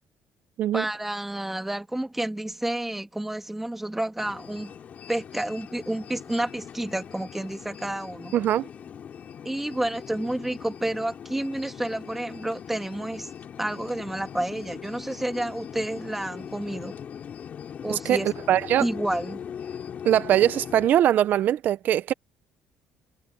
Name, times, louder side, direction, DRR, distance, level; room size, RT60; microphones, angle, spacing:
voice 1, 0.7-4.7 5.1-8.3 9.4-13.3 13.6-16.9 17.8-18.3 18.8-19.4, right 1 dB, 5° right, 2.1 m, -30 dB
sound 1, 4.2-20.9, left 8 dB, 45° left, 4.6 m, -41 dB
voice 2, 8.3-8.7 17.9-18.2 18.5-18.8 20.0-22.1, right 11 dB, 60° right, 0.7 m, -21 dB
cardioid pair, 120°, 4 cm